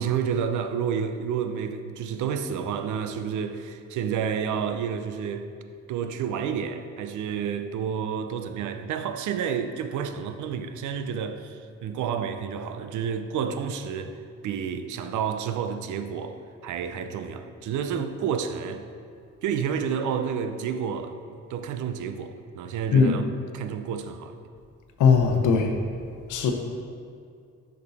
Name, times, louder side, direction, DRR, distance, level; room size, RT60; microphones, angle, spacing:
voice 1, 0.0-5.5 5.9-14.2 14.4-18.8 19.4-23.3 23.5-24.4, right 7 dB, 75° right, 0.6 m, -30 dB
voice 2, 25.0-25.8 26.3-26.5, left 5 dB, 75° left, 0.8 m, -19 dB
6.7 x 5.3 x 4.1 m
cardioid pair, 90°, 30 cm